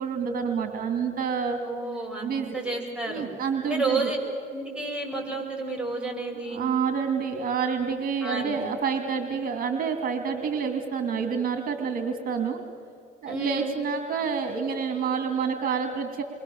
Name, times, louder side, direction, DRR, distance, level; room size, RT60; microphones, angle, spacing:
voice 1, 0.0-1.6 2.2-2.6 3.1-4.1 6.5-12.6 13.2-16.2, right 6 dB, 55° right, 5 dB, 2.7 m, -28 dB
voice 2, 1.6-3.3 3.6-4.2 4.5-6.6 8.2-8.6 13.3-13.7, right 3 dB, 5° right, -2 dB, 7.3 m, -31 dB
29.0 x 24.0 x 7.3 m, 2.5 s
cardioid pair, 110°, 17 cm